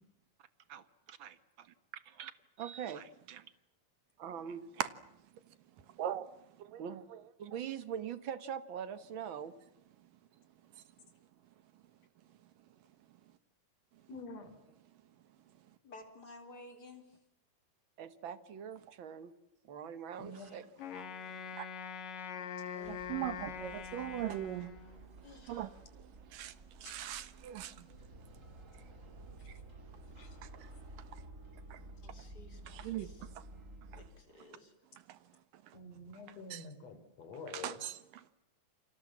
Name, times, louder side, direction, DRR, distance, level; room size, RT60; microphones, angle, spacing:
voice 1, 0.4-2.3 2.6-3.5 4.2-4.8 6.8-7.1 7.4-9.6 18.0-19.3 19.6-20.7, right 8 dB, 50° right, 1.6 m, -43 dB
voice 2, 14.1-14.5 20.2-20.5 27.7-27.9 30.2-30.3 32.8-32.9 35.7-37.8, left 3 dB, 50° left, 4.6 m, -48 dB
voice 3, 15.8-17.2 19.8-19.9 20.3-20.6 22.3-23.0 25.2-25.7 32.0-33.3 34.0-34.7, left 2 dB, 30° left, 4.4 m, -55 dB
Wind instrument woodwind instrument, 20.8-25.2, left 7 dB, 85° left, 3.8 m, -44 dB
sound 1, 22.8-34.1, right 2 dB, 25° right, 3.8 m, -53 dB
voice 4, 22.9-24.7 25.2-27.8 30.4-30.7 31.0-31.2 31.7-31.8 32.7-33.4 33.9-34.0 35.1-35.2 35.7-35.8 36.5-36.7 37.5-38.2, right 12 dB, 90° right, 3.1 m, -41 dB
29.5 x 26.0 x 7.4 m
omnidirectional pair, 3.7 m